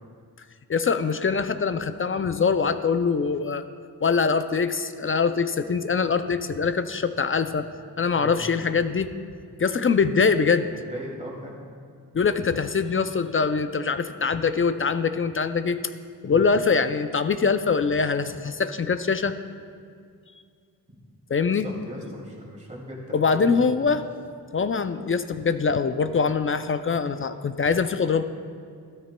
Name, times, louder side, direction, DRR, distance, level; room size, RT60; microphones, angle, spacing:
voice 1, 0.7-3.6 4.0-7.7 8.0-9.1 9.6-10.7 12.1-15.8 16.2-19.3 21.3-21.7 23.1-24.0 24.5-28.2, left 5 dB, 35° left, 10 dB, 0.4 m, -23 dB
voice 2, 10.7-11.6 16.3-16.4 20.9-21.0 21.4-23.7, equal, 20° right, -3 dB, 2.5 m, -39 dB
13.5 x 13.0 x 2.2 m, 2.2 s
wide cardioid pair, 100°, 37 cm